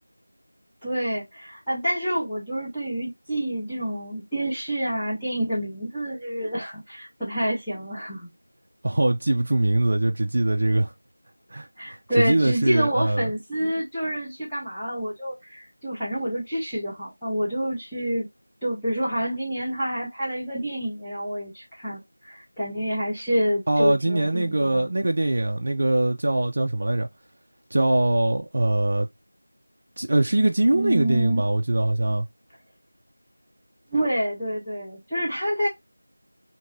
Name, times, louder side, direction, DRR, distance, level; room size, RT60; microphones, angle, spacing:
voice 1, 0.8-8.3 11.8-18.3 18.6-24.9 30.7-31.4 33.9-35.7, equal, 5° left, 0.6 m, -28 dB
voice 2, 8.8-10.9 11.5-13.3 23.7-27.1 27.7-29.1 30.0-32.3, right 2 dB, 35° right, 0.3 m, -22 dB
2.8 x 2.6 x 3.1 m
figure-of-eight pair, 175°, 0 cm